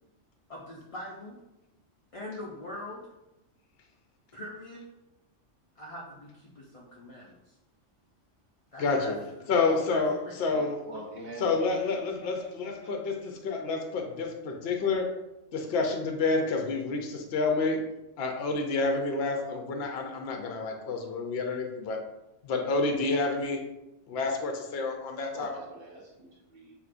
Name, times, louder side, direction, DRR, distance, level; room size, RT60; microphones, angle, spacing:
voice 1, 0.5-1.4 2.1-3.0 4.3-4.8 5.8-7.5 8.7-10.4 10.9-11.0 11.4-13.3, left 1 dB, 45° left, -4 dB, 0.4 m, -44 dB
voice 2, 8.8-9.2 9.5-10.8 11.4-15.1 15.5-17.8 18.2-22.0 22.4-23.6 24.1-25.5, left 3 dB, 60° left, 3 dB, 0.8 m, -29 dB
voice 3, 10.5-11.6 20.7-21.0 25.3-26.7, right 1 dB, 50° right, -4 dB, 1.4 m, -44 dB
6.1 x 2.9 x 2.5 m, 0.95 s
omnidirectional pair, 1.3 m